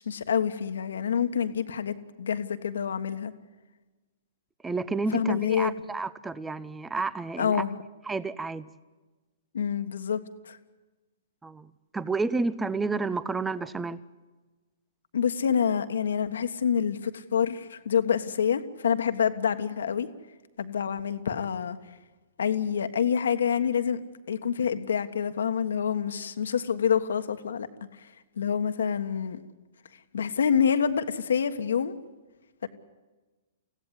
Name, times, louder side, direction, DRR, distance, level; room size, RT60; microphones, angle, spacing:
voice 1, 0.0-3.3 5.1-5.7 7.4-7.8 9.5-10.6 15.1-20.1 20.6-21.8 22.4-24.0 24.3-27.7 28.0-28.1 28.4-29.4 30.1-31.9 32.6-32.7, left 7 dB, 75° left, 9 dB, 1.5 m, -27 dB
voice 2, 4.6-7.6 8.1-8.7 11.4-14.0, right 3 dB, 10° right, 18 dB, 0.7 m, -30 dB
25.0 x 16.0 x 9.7 m, 1.2 s
hypercardioid pair, 120°, 0 cm